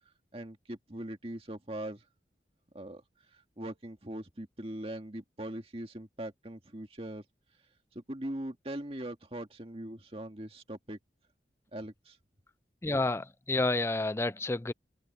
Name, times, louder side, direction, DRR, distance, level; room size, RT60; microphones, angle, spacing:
voice 1, 0.3-2.0 2.7-3.0 3.3-7.2 7.9-11.0 11.7-12.2, right 1 dB, 35° right, 2.0 m, -41 dB
voice 2, 12.8-14.7, left 2 dB, 15° left, 0.4 m, -30 dB
open air
head